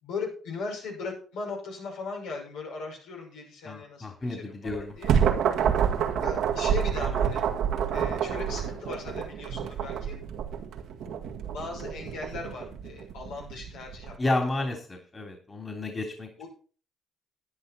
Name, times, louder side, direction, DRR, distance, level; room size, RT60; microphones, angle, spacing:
voice 1, 0.0-5.2 6.2-7.4 7.9-10.3 11.5-14.3 14.6-14.7 16.4-16.5, left 4 dB, 85° left, -2 dB, 6.3 m, -38 dB
voice 2, 3.7-4.9 14.2-16.3, left 2 dB, 30° left, 3 dB, 3.4 m, -31 dB
sound 1, 4.7-14.1, right 8 dB, 75° right, 1.9 m, -28 dB
11.5 x 10.0 x 4.3 m, 0.39 s
supercardioid pair, 60°, 0 cm